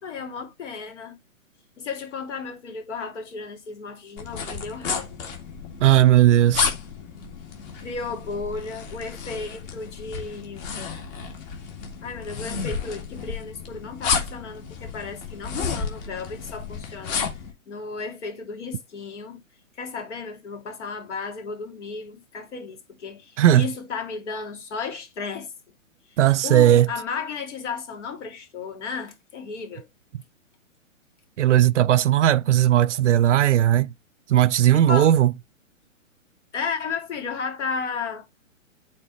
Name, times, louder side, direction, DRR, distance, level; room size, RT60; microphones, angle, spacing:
voice 1, 0.0-1.2 1.8-5.1 7.8-10.7 12.0-17.4 17.7-19.4 19.8-25.5 26.1-26.2 26.4-29.9 34.7-35.1 36.5-38.3, left 5 dB, 60° left, 2.8 m, -34 dB
sound 1, 4.2-17.5, left 6 dB, 30° left, 2.2 m, -32 dB
voice 2, 5.8-6.7 23.4-23.7 26.2-26.9 31.4-33.9 34.3-35.3, right 12 dB, 60° right, 0.5 m, -17 dB
8.5 x 4.1 x 3.0 m
hypercardioid pair, 140°, 40 cm